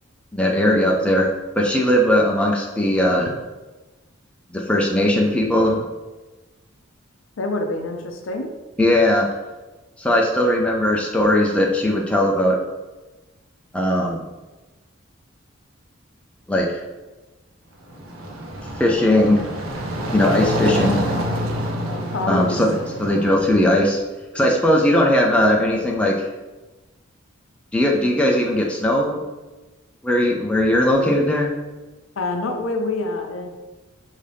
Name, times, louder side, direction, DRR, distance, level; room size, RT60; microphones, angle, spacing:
voice 1, 0.3-1.3 1.6-3.3 4.5-5.8 8.8-9.3 10.0-12.6 13.7-14.2 16.5-16.8 18.8-19.4 20.1-21.0 22.3-24.0 24.3-26.1 27.7-29.2 30.0-31.5, left 1 dB, 5° left, -1 dB, 0.4 m, -18 dB
voice 2, 7.4-8.5 22.1-22.6 32.2-33.5, left 2 dB, 75° left, 4 dB, 0.6 m, -26 dB
sound 1, 17.8-23.8, equal, 80° right, 0.6 m, -27 dB
5.0 x 2.7 x 3.3 m, 1.2 s
head